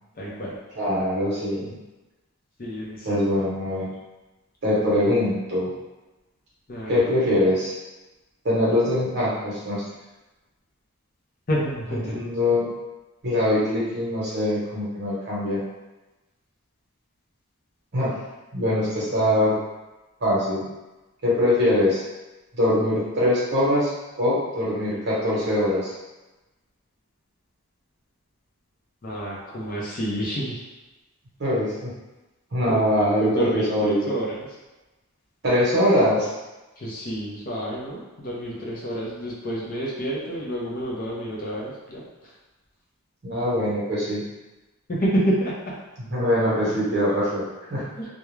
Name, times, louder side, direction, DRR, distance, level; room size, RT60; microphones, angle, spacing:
voice 1, 0.2-0.6 2.6-3.2 6.7-7.0 11.5-12.2 29.0-30.6 32.7-34.5 36.8-42.3 44.9-45.8 48.0-48.1, equal, 40° left, -5 dB, 0.5 m, -29 dB
voice 2, 0.7-1.8 3.0-3.9 4.6-5.7 6.9-7.7 8.4-9.9 11.9-12.7 13.2-15.6 17.9-18.2 18.5-19.6 20.2-20.7 21.2-22.0 22.5-23.9 24.2-25.9 31.4-31.9 32.5-34.1 35.4-36.3 43.2-44.2 46.1-47.4 47.7-47.9, left 1 dB, 50° right, -7 dB, 0.9 m, -22 dB
2.3 x 2.1 x 3.1 m, 1.1 s
head